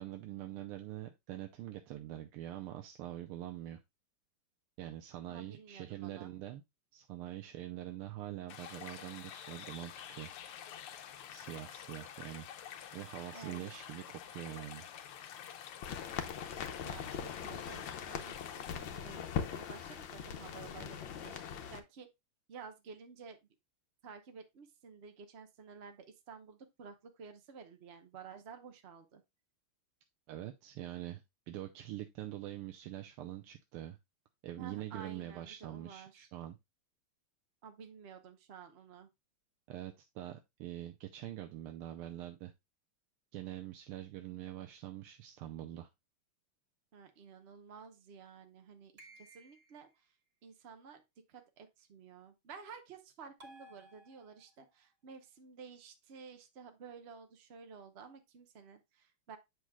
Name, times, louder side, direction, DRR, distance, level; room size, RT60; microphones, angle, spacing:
voice 1, 0.0-3.8 4.8-6.6 6.9-10.3 11.3-12.5 12.9-14.9 30.3-34.0 34.4-36.6 39.7-42.5 43.3-45.9, right 13 dB, 85° right, 1.5 m, -44 dB
voice 2, 5.3-6.3 13.3-13.6 16.8-18.3 18.8-21.4 21.7-22.1 22.5-23.4 24.0-29.2 34.6-36.3 37.6-39.1 46.9-50.1 50.4-51.0 51.3-59.4, right 6 dB, 60° right, 0.6 m, -52 dB
sound 1, 8.5-18.8, left 9 dB, 85° left, 1.6 m, -49 dB
sound 2, 15.8-21.8, left 8 dB, 70° left, 1.5 m, -41 dB
sound 3, 49.0-49.9 53.4-54.6, right 1 dB, 40° right, 1.5 m, -57 dB
8.0 x 6.2 x 2.3 m
omnidirectional pair, 2.4 m